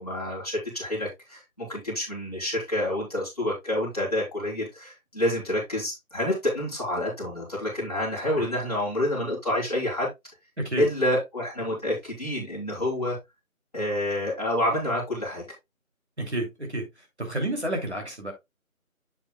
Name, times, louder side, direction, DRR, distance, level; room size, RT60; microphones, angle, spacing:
voice 1, 0.0-10.1 10.8-13.2 13.7-15.4, left 1 dB, 25° left, 3.4 m, -28 dB
voice 2, 16.2-16.8 17.2-18.3, right 1 dB, 50° right, 2.8 m, -30 dB
7.8 x 7.4 x 2.3 m
figure-of-eight pair, 175°, 43 cm